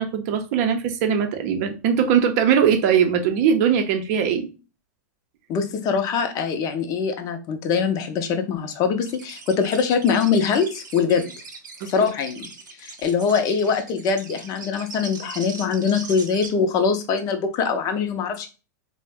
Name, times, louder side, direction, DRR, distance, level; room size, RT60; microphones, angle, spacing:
voice 1, 0.0-4.5 11.8-11.9, right 8 dB, 55° right, 0.5 m, -20 dB
voice 2, 5.5-11.2 11.9-12.5 12.8-18.5, left 6 dB, 35° left, 0.5 m, -23 dB
sound 1, 9.0-16.5, right 4 dB, 90° right, 0.7 m, -40 dB
2.4 x 2.1 x 3.4 m
hypercardioid pair, 125°, 10 cm